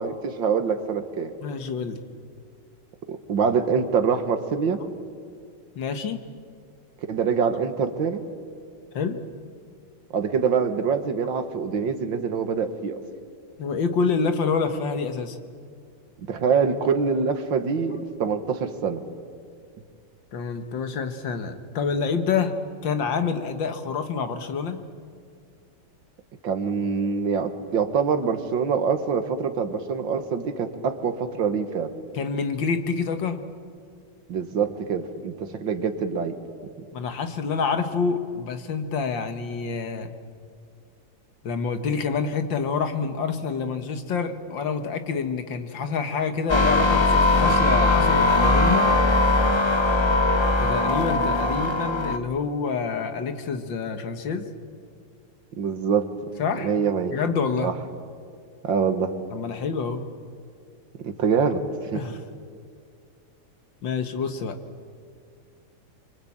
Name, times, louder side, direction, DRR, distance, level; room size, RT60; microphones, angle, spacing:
voice 1, 0.0-1.3 3.1-4.8 7.1-8.2 10.1-13.0 16.3-19.0 26.4-31.9 34.3-36.4 55.6-56.1 56.6-57.1 57.6-57.7 58.6-59.1 61.0-61.6 61.9-62.0, right 6 dB, 70° right, 8 dB, 2.1 m, -25 dB
voice 2, 1.4-2.0 5.8-6.2 8.9-9.2 13.6-15.4 20.3-22.6 22.8-24.8 32.1-33.4 36.9-40.1 41.4-48.9 50.6-54.5 56.4-56.7 57.1-57.7 59.3-60.1 61.9-62.2 63.8-64.6, left 5 dB, 70° left, 8 dB, 2.1 m, -27 dB
sound 1, 46.5-52.2, left 2 dB, 25° left, 0.6 m, -20 dB
25.0 x 25.0 x 8.7 m, 2.2 s
omnidirectional pair, 2.1 m